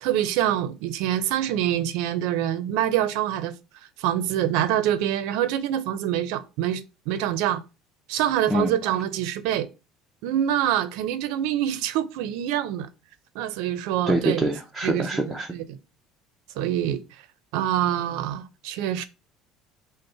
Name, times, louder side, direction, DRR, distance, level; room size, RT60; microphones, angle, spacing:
voice 1, 0.0-3.5 4.0-7.6 8.1-9.7 10.2-12.9 13.3-14.4 14.8-15.8 16.6-17.0 17.5-19.0, right 11 dB, 80° right, 0.5 m, -25 dB
voice 2, 14.1-15.5, right 1 dB, 5° right, 0.5 m, -25 dB
5.3 x 2.1 x 4.2 m
cardioid pair, 150°, 0 cm